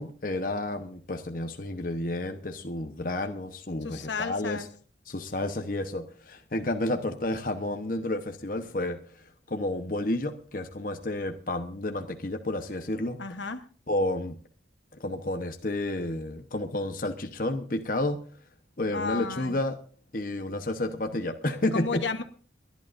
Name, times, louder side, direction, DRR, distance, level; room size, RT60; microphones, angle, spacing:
voice 1, 0.0-4.6 5.1-9.0 9.5-13.2 13.9-14.4 15.0-18.2 18.8-19.7 20.1-22.0, left 1 dB, 50° left, 6 dB, 1.1 m, -31 dB
voice 2, 3.8-4.7 13.2-13.6 18.9-19.6 21.7-22.2, left 4 dB, 85° left, 8 dB, 1.2 m, -32 dB
29.0 x 11.5 x 2.6 m, 0.42 s
head